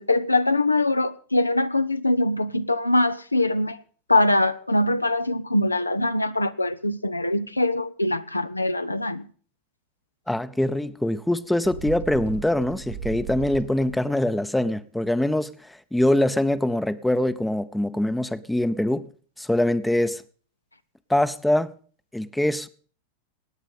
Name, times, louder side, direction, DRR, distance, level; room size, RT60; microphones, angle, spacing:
voice 1, 0.0-3.8 4.1-9.3, left 2 dB, 85° left, 0.6 m, -23 dB
voice 2, 10.3-19.1 19.4-20.2 21.1-21.7 22.1-22.7, left 1 dB, 5° left, 0.6 m, -23 dB
Bird, 11.6-14.1, right 8 dB, 65° right, 1.7 m, -36 dB
17.5 x 9.1 x 5.3 m
figure-of-eight pair, 90°, 0 cm